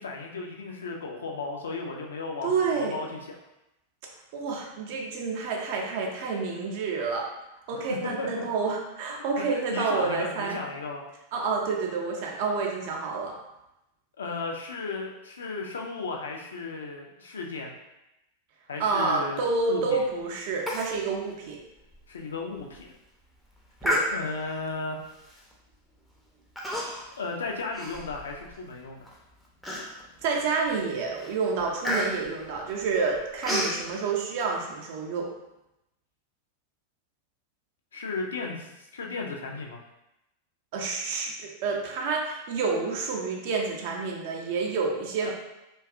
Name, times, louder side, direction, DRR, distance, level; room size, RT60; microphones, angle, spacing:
voice 1, 0.0-3.2 8.2-8.3 9.1-11.0 14.2-17.7 18.7-20.0 22.1-22.9 24.1-25.0 27.2-29.1 37.9-39.8 45.2-45.3, left 3 dB, 70° left, 0 dB, 0.4 m, -35 dB
voice 2, 2.4-3.0 4.3-7.3 7.7-10.6 11.3-13.3 18.8-21.6 23.8-24.1 30.2-35.3 40.7-45.3, right 4 dB, 50° right, 0 dB, 0.5 m, -29 dB
Human voice, 20.7-21.0 21.3-21.4 21.9-22.0 22.6-22.8 23.8-24.5 25.3-25.5 26.6-27.2 27.5-28.6 29.1-29.2 29.6-30.2 30.7-30.9 31.2-33.8, left 1 dB, ahead, 0.5 m, -31 dB
2.6 x 2.2 x 2.4 m, 0.90 s
figure-of-eight pair, 90°, 0 cm